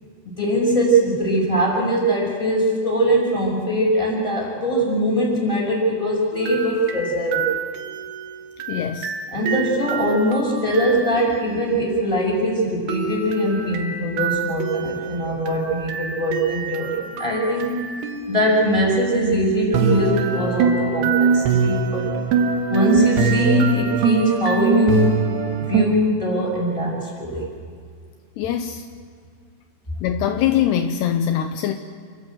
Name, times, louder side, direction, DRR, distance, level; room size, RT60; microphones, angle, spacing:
voice 1, 0.2-7.5 9.3-17.9 18.3-22.1 22.7-25.2 25.7-27.5, equal, 5° left, -2 dB, 5.9 m, -21 dB
sound 1, 6.3-11.6 12.9-18.7 19.7-25.9, right 5 dB, 70° right, 3.4 m, -24 dB
voice 2, 8.7-9.1 28.4-28.9 30.0-31.7, left 10 dB, 80° left, 7 dB, 2.8 m, -22 dB
28.5 x 15.5 x 8.0 m, 2.1 s
omnidirectional pair, 5.0 m